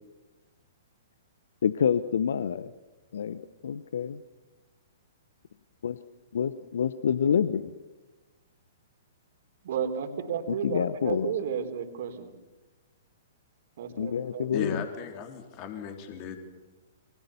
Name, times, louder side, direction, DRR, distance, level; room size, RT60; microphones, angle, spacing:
voice 1, 1.6-2.7 3.1-4.2 5.8-6.0 6.3-7.7 10.6-11.3 14.0-14.8, left 7 dB, 65° left, 15 dB, 0.9 m, -27 dB
voice 2, 9.6-12.3 13.8-14.5, right 7 dB, 55° right, 7 dB, 3.9 m, -32 dB
voice 3, 14.5-16.4, left 7 dB, 35° left, 5 dB, 3.6 m, -37 dB
29.0 x 25.0 x 7.0 m, 1.1 s
figure-of-eight pair, 115°, 0 cm